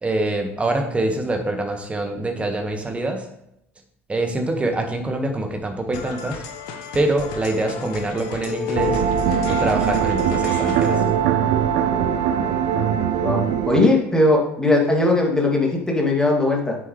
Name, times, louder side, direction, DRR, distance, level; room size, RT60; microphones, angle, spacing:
voice 1, 0.0-3.3 4.1-6.4 6.9-9.0 9.5-11.0, right 2 dB, 15° right, 4 dB, 1.7 m, -24 dB
sound 1, 5.9-11.1, left 7 dB, 60° left, 1.3 m, -33 dB
sound 2, 8.7-13.9, right 8 dB, 60° right, 0.7 m, -21 dB
voice 2, 13.2-16.8, left 2 dB, 10° left, -1 dB, 2.6 m, -19 dB
9.7 x 7.5 x 3.3 m, 0.79 s
figure-of-eight pair, 65°, 7 cm